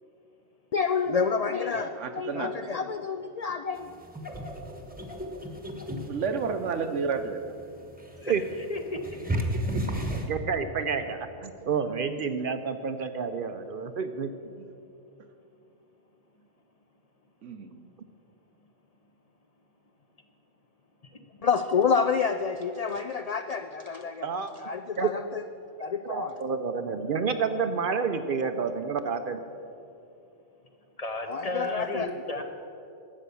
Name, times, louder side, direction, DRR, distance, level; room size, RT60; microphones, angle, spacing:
voice 1, 0.7-3.9 21.4-24.3 24.6-25.4 25.8-26.3 31.3-32.1, left 5 dB, 70° left, 8 dB, 0.3 m, -28 dB
voice 2, 2.0-2.5 6.1-7.4 9.5-9.8 14.5-14.7 17.4-17.8, right 5 dB, 80° right, 8 dB, 1.2 m, -31 dB
sound 1, 3.8-10.3, equal, 10° right, 1.0 m, -34 dB
voice 3, 10.3-14.3 24.2-24.5 25.0-25.1 26.0-29.4, right 5 dB, 60° right, 9 dB, 0.7 m, -29 dB
voice 4, 31.0-32.4, left 2 dB, 35° left, 4 dB, 0.9 m, -33 dB
12.5 x 8.8 x 6.9 m, 2.7 s
omnidirectional pair, 1.2 m